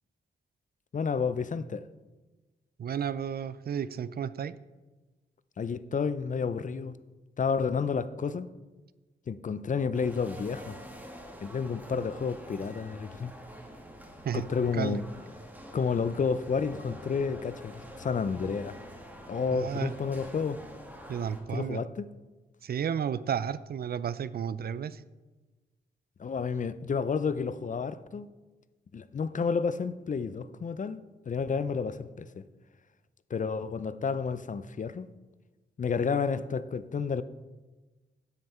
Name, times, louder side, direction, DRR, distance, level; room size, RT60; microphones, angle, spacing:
voice 1, 0.9-1.9 5.6-6.9 7.4-8.5 9.3-10.8 11.4-13.3 14.3-15.0 15.7-18.8 19.3-20.6 21.5-22.1 26.2-28.3 28.9-31.0 31.3-32.4 33.3-35.1 35.8-37.2, left 5 dB, 45° left, 0.6 m, -30 dB
voice 2, 2.8-4.6 14.2-14.5 14.7-15.0 19.5-19.9 21.1-21.8 22.6-25.0, right 8 dB, 55° right, 0.5 m, -32 dB
sound 1, 9.9-21.4, equal, 10° right, 2.6 m, -46 dB
10.0 x 7.8 x 4.4 m
cardioid pair, 55°, 19 cm